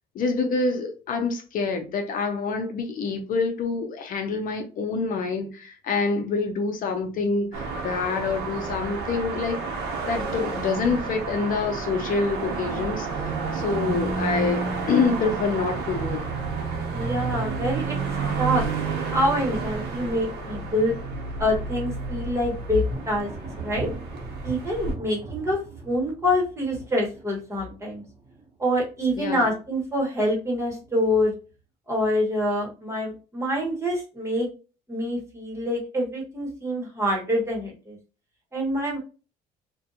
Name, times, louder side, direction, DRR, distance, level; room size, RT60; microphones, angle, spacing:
voice 1, 0.1-9.6 10.1-13.1 13.5-16.3 29.2-29.5, left 4 dB, 55° left, 0.5 m, -26 dB
sound 1, 7.5-24.9, right 4 dB, 75° right, 0.8 m, -30 dB
voice 2, 16.9-18.0 18.4-18.6 19.1-20.9 21.4-23.3 23.6-23.9 24.4-25.6 25.8-28.0 28.6-31.3 31.9-34.5 34.9-38.0 38.5-39.0, equal, 15° right, 1.1 m, -26 dB
Thunder, 22.8-29.3 29.6-30.2 30.7-31.5, right 3 dB, 30° right, 0.8 m, -40 dB
2.5 x 2.2 x 2.7 m
cardioid pair, 110°, 17 cm